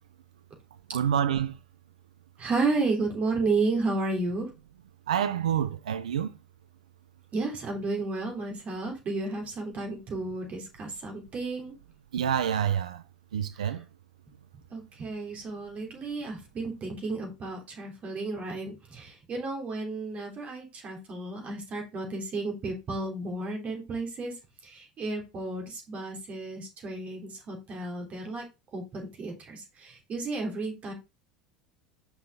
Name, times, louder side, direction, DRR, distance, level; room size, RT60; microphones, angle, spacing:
voice 1, 0.9-1.6 5.1-6.3 12.1-13.0 13.3-13.8, right 9 dB, 80° right, 0.5 m, -27 dB
voice 2, 2.4-4.5 7.3-11.7 13.6-13.7 14.7-24.3 24.6-28.4 28.7-30.9, right 3 dB, 35° right, 3.4 m, -32 dB
5.8 x 5.8 x 3.5 m
hypercardioid pair, 75°, 4 cm